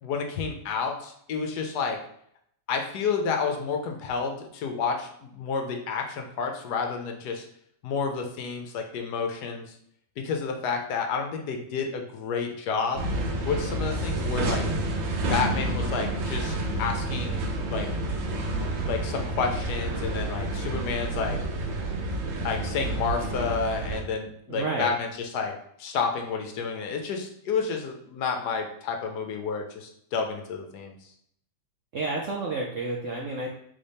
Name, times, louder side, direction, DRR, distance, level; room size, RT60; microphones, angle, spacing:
voice 1, 0.0-2.0 2.7-7.5 7.8-9.7 10.2-13.0 13.5-14.6 15.3-17.9 18.5-21.4 22.4-25.5 25.8-30.9, left 5 dB, 70° left, 4 dB, 1.1 m, -30 dB
sound 1, 12.9-24.0, right 1 dB, 85° right, 1.5 m, -29 dB
voice 2, 24.5-24.9 31.9-33.5, right 3 dB, 70° right, -1 dB, 0.7 m, -30 dB
3.6 x 3.4 x 4.0 m, 0.69 s
omnidirectional pair, 2.0 m